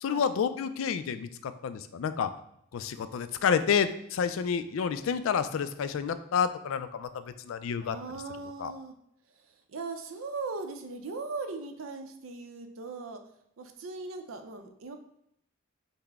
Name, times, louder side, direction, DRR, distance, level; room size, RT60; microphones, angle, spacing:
voice 1, 0.0-2.3 2.7-8.0 8.6-8.7, left 7 dB, 75° left, 12 dB, 0.3 m, -29 dB
voice 2, 7.8-8.9 9.7-13.2 13.6-15.0, right 3 dB, 85° right, 7 dB, 0.5 m, -39 dB
5.7 x 2.0 x 3.4 m, 0.75 s
head